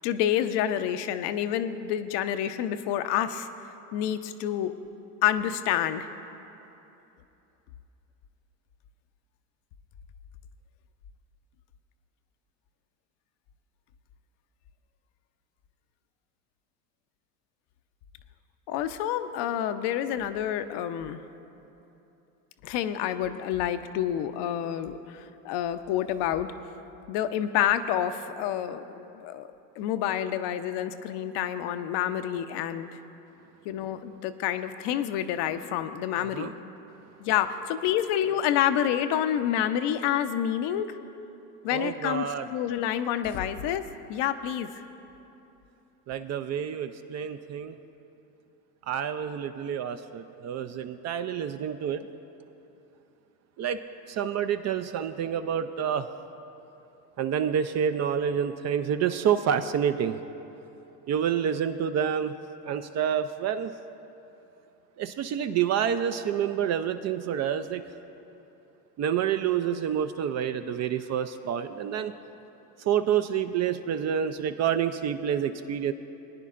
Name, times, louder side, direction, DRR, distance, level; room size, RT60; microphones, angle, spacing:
voice 1, 0.0-3.5 3.9-4.7 5.2-6.1 18.7-21.2 22.6-26.5 27.1-29.5 29.8-33.0 33.6-36.5 37.2-41.0 41.6-42.3 42.5-43.8 44.1-44.7, left 10 dB, 55° left, 10 dB, 0.7 m, -28 dB
voice 2, 36.2-36.5 41.7-42.5 46.1-47.8 48.9-52.1 53.6-53.8 54.1-56.1 57.2-60.2 61.1-62.3 62.6-63.7 65.0-67.8 69.0-72.1 72.8-75.9, right 8 dB, 35° right, 10 dB, 0.4 m, -28 dB
20.5 x 9.9 x 2.5 m, 2.9 s
hypercardioid pair, 80°, 49 cm